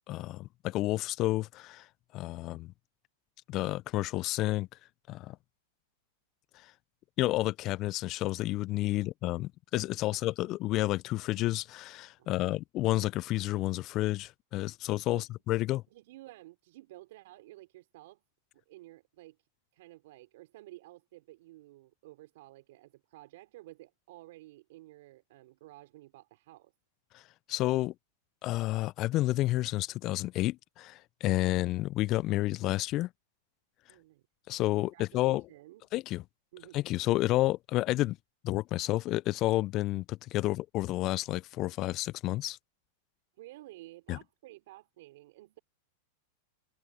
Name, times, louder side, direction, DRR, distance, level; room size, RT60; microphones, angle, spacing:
voice 1, 0.1-1.9 2.1-2.7 3.5-4.7 5.1-5.4 6.5-6.7 7.2-15.8 27.1-27.2 27.5-27.9 28.4-33.1 34.5-35.4 35.9-36.2 36.7-38.2 38.4-42.6 44.1-44.2, left 17 dB, 45° left, 0.3 m, -30 dB
voice 2, 12.2-12.6 15.1-15.3 15.9-18.2 18.5-26.7 33.9-34.3 34.8-35.9 36.5-36.8 40.5-40.6 43.4-45.6, right 17 dB, 65° right, 4.8 m, -53 dB
hypercardioid pair, 110°, 0 cm